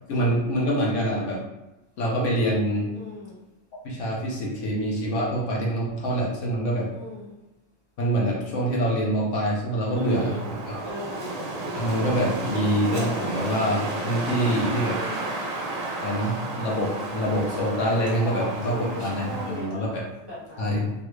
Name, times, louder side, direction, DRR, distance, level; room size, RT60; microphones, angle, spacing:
voice 1, 0.1-1.4 2.0-2.9 3.8-6.9 8.0-10.4 10.6-10.8 11.8-15.0 16.0-20.0 20.6-20.9, equal, 70° left, -4 dB, 1.1 m, -25 dB
voice 2, 2.9-3.4 6.9-7.3 9.9-10.4 10.8-11.3 14.9-15.3 18.2-19.9 20.2-20.8, right 1 dB, 20° right, -9 dB, 1.0 m, -37 dB
Wind, 9.9-19.7, right 2 dB, 90° right, 0.3 m, -32 dB
3.3 x 2.4 x 3.0 m, 0.97 s
omnidirectional pair, 1.3 m